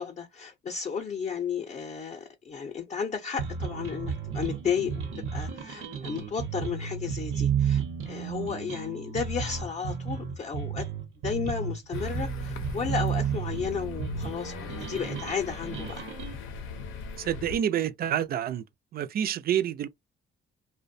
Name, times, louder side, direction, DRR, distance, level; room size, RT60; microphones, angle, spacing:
voice 1, 0.0-10.9 11.2-16.1, left 6 dB, 35° left, 0.5 m, -33 dB
sound 1, 3.4-16.3, right 7 dB, 80° right, 0.8 m, -32 dB
sound 2, 11.9-17.6, left 5 dB, 85° left, 0.6 m, -40 dB
voice 2, 17.2-18.6 18.9-19.9, right 10 dB, 50° right, 0.4 m, -28 dB
2.5 x 2.1 x 2.5 m
cardioid pair, 90°, 20 cm